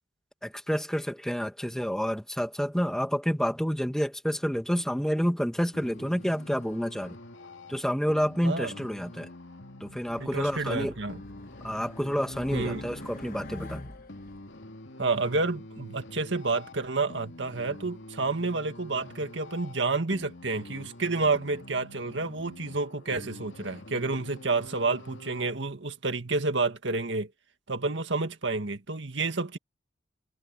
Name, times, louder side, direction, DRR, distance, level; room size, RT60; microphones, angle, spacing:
voice 1, 0.4-7.2 7.7-9.3 9.8-11.0 11.6-13.8, equal, 5° left, 2.1 m, -29 dB
sound 1, 5.7-25.5, left 2 dB, 80° left, 2.5 m, -47 dB
Race car auto racing, 10.2-14.4, left 1 dB, 50° left, 1.9 m, -43 dB
voice 2, 10.2-11.2 12.5-12.8 15.0-27.3 27.7-29.6, right 3 dB, 75° right, 1.9 m, -29 dB
head